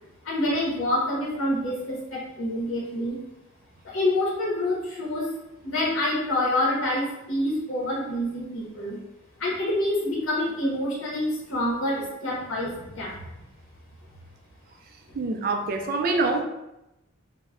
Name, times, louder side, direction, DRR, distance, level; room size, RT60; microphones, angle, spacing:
voice 1, 0.2-3.2 3.8-5.3 5.6-9.0 9.4-13.2, left 1 dB, 75° left, -5 dB, 0.7 m, -27 dB
voice 2, 15.1-16.4, right 3 dB, 45° right, 4 dB, 0.3 m, -25 dB
2.1 x 2.1 x 3.5 m, 0.92 s
head